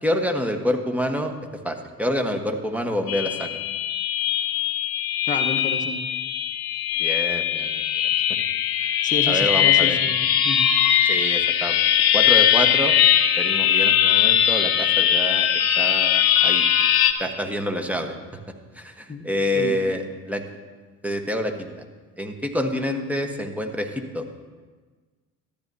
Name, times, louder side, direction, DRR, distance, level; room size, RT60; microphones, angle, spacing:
voice 1, 0.0-1.3 1.6-3.6 7.0-7.8 9.3-10.0 11.0-11.8 12.1-13.0 13.4-15.5 15.8-16.7 17.2-18.2 18.7-20.4 21.0-21.8 22.2-24.2, equal, 5° right, 5 dB, 1.1 m, -27 dB
sound 1, 3.1-17.1, left 10 dB, 55° left, 0.9 m, -20 dB
voice 2, 5.3-6.0 9.0-10.2 10.4-10.7 19.1-19.3 19.5-19.8, left 3 dB, 20° left, 3 dB, 1.1 m, -30 dB
13.5 x 9.8 x 2.7 m, 1.4 s
hypercardioid pair, 55°, 43 cm